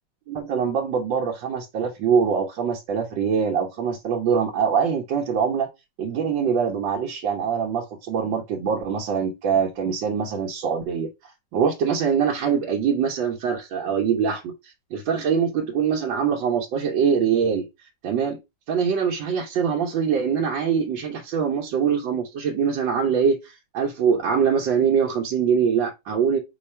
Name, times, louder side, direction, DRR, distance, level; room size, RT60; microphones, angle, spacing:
voice 1, 0.3-5.7 6.0-14.4 14.9-17.7 18.0-18.4 18.7-26.4, right 6 dB, 90° right, 1.6 m, -23 dB
5.1 x 2.4 x 4.2 m
omnidirectional pair, 2.0 m